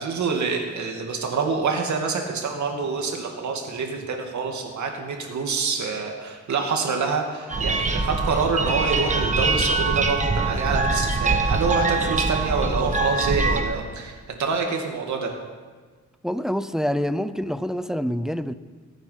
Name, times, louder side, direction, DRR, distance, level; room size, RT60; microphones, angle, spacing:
voice 1, 0.0-14.1 14.4-15.3, right 4 dB, 70° right, 2 dB, 2.4 m, -26 dB
sound 1, 7.5-13.6, right 3 dB, 25° right, 1.5 m, -23 dB
voice 2, 16.2-18.5, equal, ahead, 13 dB, 0.5 m, -26 dB
23.0 x 9.0 x 5.8 m, 1.5 s
cardioid pair, 120°, 30 cm